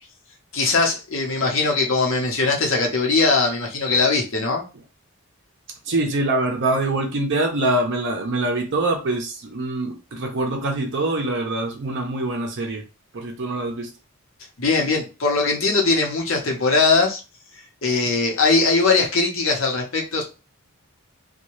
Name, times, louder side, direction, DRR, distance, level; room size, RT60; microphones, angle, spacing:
voice 1, 0.5-4.6 14.6-17.2 17.8-20.2, left 3 dB, 60° left, 0 dB, 0.9 m, -20 dB
voice 2, 5.9-12.8 13.1-13.9, right 2 dB, 55° right, 2 dB, 0.6 m, -24 dB
2.7 x 2.3 x 3.0 m, 0.30 s
head